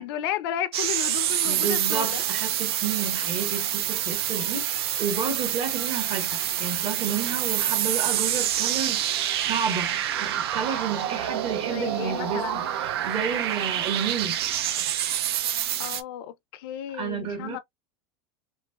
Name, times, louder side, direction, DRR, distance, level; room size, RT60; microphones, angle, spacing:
voice 1, 0.0-2.2 11.7-12.6 15.8-17.6, left 11 dB, 70° left, 0.5 m, -33 dB
sound 1, 0.7-16.0, right 11 dB, 85° right, 0.5 m, -27 dB
voice 2, 1.4-14.4 16.9-17.6, right 6 dB, 45° right, 1.1 m, -31 dB
3.1 x 2.1 x 2.2 m
supercardioid pair, 115°, 13 cm